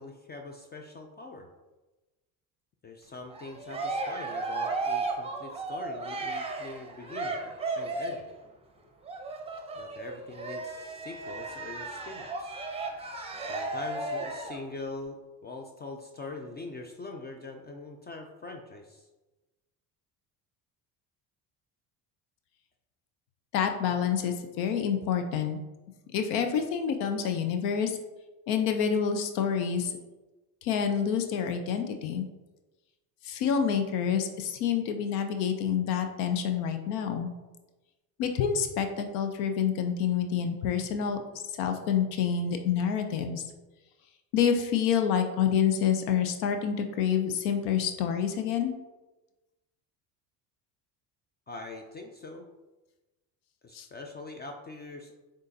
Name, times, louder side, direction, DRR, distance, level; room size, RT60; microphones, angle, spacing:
voice 1, 0.0-1.5 2.8-8.3 9.7-12.6 13.3-19.1 51.5-52.5 53.6-55.1, left 3 dB, 25° left, 4 dB, 0.3 m, -43 dB
Cheering, 3.3-8.3 9.1-14.6, right 3 dB, 15° right, 0.6 m, -35 dB
voice 2, 23.5-25.6 26.1-28.0 28.5-30.0 30.6-32.2 33.2-37.3 38.2-43.4 44.3-48.7 53.7-53.9, left 7 dB, 85° left, 6 dB, 0.6 m, -28 dB
6.3 x 2.5 x 2.7 m, 1.1 s
supercardioid pair, 80°, 42 cm